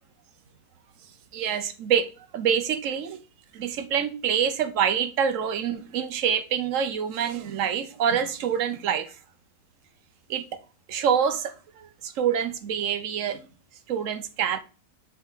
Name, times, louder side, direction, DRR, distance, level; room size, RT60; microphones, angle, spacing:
voice 1, 1.3-2.1 2.3-3.2 3.5-9.1 10.3-10.4 10.9-13.4 13.9-14.6, right 8 dB, 60° right, 1.0 m, -26 dB
6.5 x 3.6 x 4.5 m
omnidirectional pair, 1.6 m